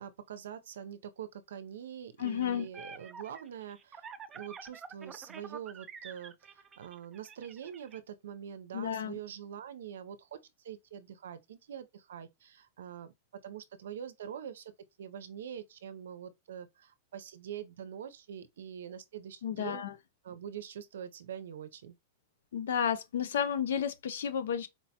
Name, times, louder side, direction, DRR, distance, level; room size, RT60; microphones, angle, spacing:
voice 1, 0.0-4.1 4.3-13.1 13.4-14.7 15.0-19.8 20.2-22.0, right 9 dB, 85° right, 0.5 m, -44 dB
voice 2, 2.2-2.7 8.7-9.2 19.4-19.9 22.5-24.7, left 8 dB, 80° left, 0.6 m, -32 dB
sound 1, 2.2-8.0, right 6 dB, 20° right, 0.4 m, -48 dB
4.5 x 2.1 x 2.8 m
hypercardioid pair, 130°, 0 cm